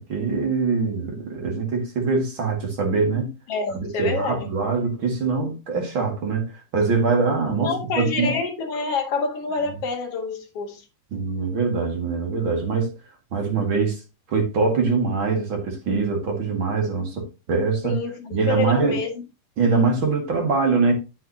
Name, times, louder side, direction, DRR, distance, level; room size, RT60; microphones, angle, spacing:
voice 1, 0.0-3.3 4.0-8.3 11.1-12.9 13.3-14.0 14.3-18.0 18.3-19.0 19.6-20.9, right 4 dB, 45° right, 1.6 m, -23 dB
voice 2, 3.5-4.4 7.6-10.8 17.8-19.1, left 4 dB, 55° left, 1.7 m, -27 dB
9.4 x 8.6 x 2.8 m
omnidirectional pair, 5.1 m